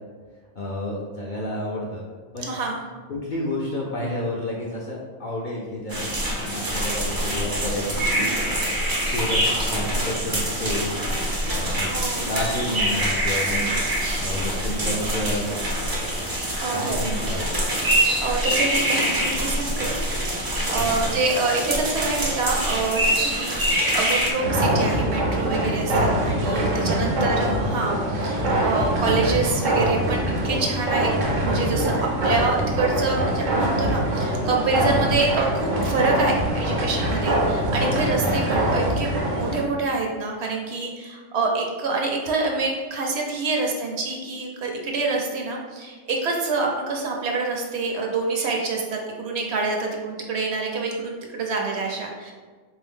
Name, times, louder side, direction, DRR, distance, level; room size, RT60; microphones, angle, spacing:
voice 1, 0.6-2.0 2.3-2.5 3.1-6.2 6.4-8.6 9.1-11.0 11.5-11.9 12.2-13.7 14.2-15.5 16.7-17.6 20.8-21.1 27.2-27.5, left 1 dB, 55° left, -3 dB, 0.6 m, -30 dB
voice 2, 2.4-2.8 11.9-12.3 16.6-17.0 18.2-31.1 31.4-52.3, right 3 dB, 65° right, 0 dB, 0.8 m, -26 dB
sound 1, 5.9-24.3, right 1 dB, 35° right, 0.3 m, -25 dB
sound 2, 24.4-39.7, right 1 dB, 85° right, 1.1 m, -23 dB
3.8 x 2.7 x 3.5 m, 1.4 s
omnidirectional pair, 1.3 m